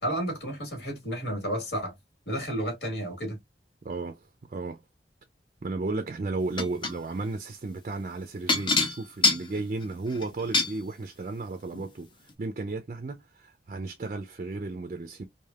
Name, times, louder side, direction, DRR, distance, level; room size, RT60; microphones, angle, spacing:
voice 1, 0.0-1.9 2.3-3.4, right 1 dB, 75° left, 1.8 m, -31 dB
voice 2, 3.8-4.2 4.5-4.8 5.6-12.1 12.4-15.2, right 3 dB, 45° right, 0.4 m, -34 dB
sound 1, 6.6-7.0 8.5-10.8 11.7-11.9 12.3-12.4, left 3 dB, 25° left, 0.6 m, -25 dB
3.3 x 2.5 x 2.3 m
head